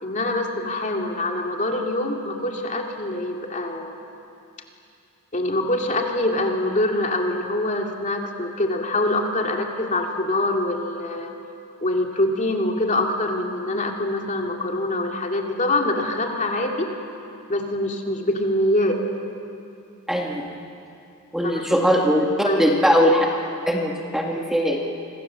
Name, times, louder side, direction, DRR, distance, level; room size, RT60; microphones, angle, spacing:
voice 1, 0.0-3.9 5.3-11.3 11.8-16.9 17.5-19.0 21.4-21.6 22.4-22.6, left 1 dB, 35° left, 2 dB, 2.5 m, -24 dB
voice 2, 20.1-20.5 21.3-23.3 23.7-24.8, equal, ahead, 0 dB, 1.9 m, -20 dB
26.5 x 25.5 x 7.6 m, 2.7 s
head